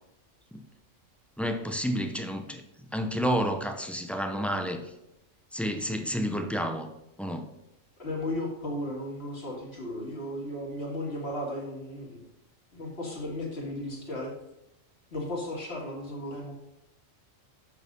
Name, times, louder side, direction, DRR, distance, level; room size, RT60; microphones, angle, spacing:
voice 1, 1.4-2.6 2.9-4.9 5.5-6.9 7.2-7.4, equal, ahead, 5 dB, 0.4 m, -30 dB
voice 2, 8.0-12.2 12.7-14.3 15.1-16.5, left 1 dB, 50° left, -1 dB, 2.1 m, -35 dB
6.8 x 6.3 x 5.2 m, 0.85 s
omnidirectional pair, 1.4 m